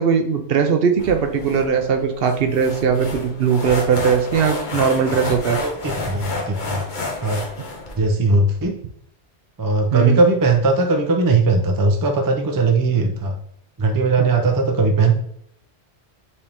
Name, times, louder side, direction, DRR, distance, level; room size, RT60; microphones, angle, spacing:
voice 1, 0.0-5.6 9.9-10.2 14.2-14.4, right 6 dB, 65° right, 6 dB, 0.8 m, -19 dB
sound 1, 1.0-7.9, left 3 dB, 50° left, 0.9 m, -30 dB
voice 2, 5.6-6.8 7.2-7.4 8.0-8.8 9.6-13.4 13.8-15.1, right 3 dB, 30° right, 4 dB, 0.4 m, -19 dB
5.5 x 2.8 x 3.4 m, 0.68 s
omnidirectional pair, 1.2 m